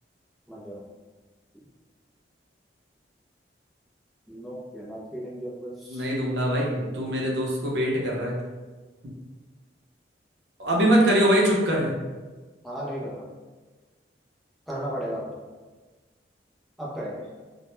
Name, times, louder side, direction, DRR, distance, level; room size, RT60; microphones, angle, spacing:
voice 1, 0.5-0.9 4.3-6.1 12.6-13.3 14.7-15.3 16.8-17.3, equal, ahead, -6 dB, 0.3 m, -35 dB
voice 2, 5.9-8.4 10.6-11.9, equal, 75° right, -3 dB, 0.6 m, -23 dB
2.1 x 2.0 x 2.9 m, 1.3 s
head